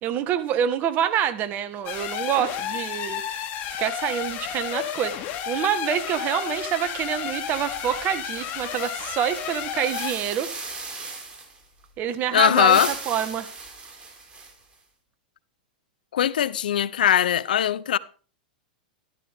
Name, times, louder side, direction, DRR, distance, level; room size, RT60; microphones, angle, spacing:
voice 1, 0.0-3.4 3.8-10.5 12.0-12.8 13.1-13.5, right 10 dB, 40° right, 1.5 m, -26 dB
sound 1, 1.8-10.1, left 9 dB, 45° left, 2.6 m, -32 dB
sound 2, 7.4-11.6 12.4-14.7, right 3 dB, 25° right, 5.2 m, -38 dB
voice 2, 12.3-12.9 16.1-18.0, left 10 dB, 80° left, 0.7 m, -20 dB
13.5 x 13.0 x 3.6 m
hypercardioid pair, 110°, 5 cm